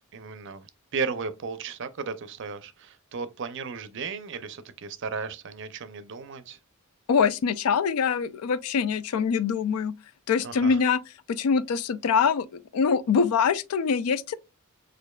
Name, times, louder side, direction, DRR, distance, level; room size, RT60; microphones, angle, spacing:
voice 1, 0.1-0.7 0.9-6.6 10.4-10.8, right 5 dB, 55° right, 0.5 m, -35 dB
voice 2, 7.1-9.9 10.3-11.0 11.3-12.5 12.7-14.3, left 6 dB, 85° left, 0.4 m, -24 dB
6.4 x 2.5 x 2.2 m
head